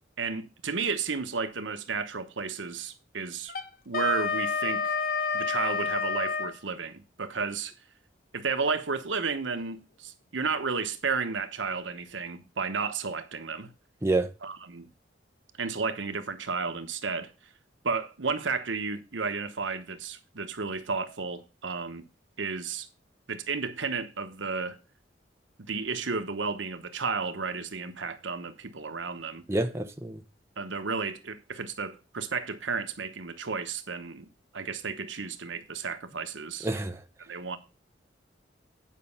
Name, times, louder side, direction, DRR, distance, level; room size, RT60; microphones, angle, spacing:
voice 1, 0.2-3.5 3.9-4.9 5.3-7.7 8.3-13.7 14.4-14.9 15.6-17.3 17.8-22.0 22.4-22.9 23.3-24.8 25.6-29.4 30.6-34.3 34.5-36.7 37.2-37.6, right 5 dB, 90° right, 1.1 m, -32 dB
Wind instrument woodwind instrument, 3.5-6.6, left 4 dB, 50° left, 0.8 m, -29 dB
voice 2, 29.5-30.2 36.6-37.0, right 2 dB, 15° right, 0.7 m, -27 dB
9.3 x 5.3 x 5.5 m
head